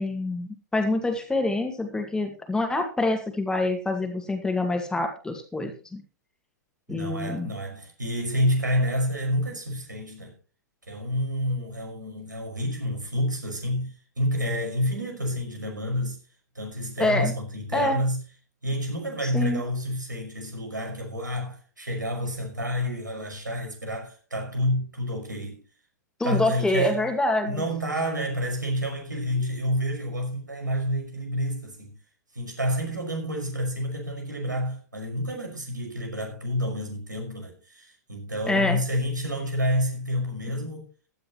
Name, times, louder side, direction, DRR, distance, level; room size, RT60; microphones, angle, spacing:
voice 1, 0.0-6.0 6.9-7.5 17.0-17.3 17.7-18.0 19.2-19.6 26.2-27.6 38.5-38.8, left 2 dB, 5° left, 2.0 m, -26 dB
voice 2, 6.9-10.3 10.9-16.2 16.6-18.2 18.6-25.6 26.2-27.0 27.5-31.9 32.3-40.9, equal, 85° right, 5.4 m, -29 dB
16.0 x 12.0 x 3.1 m
figure-of-eight pair, 105°, 10 cm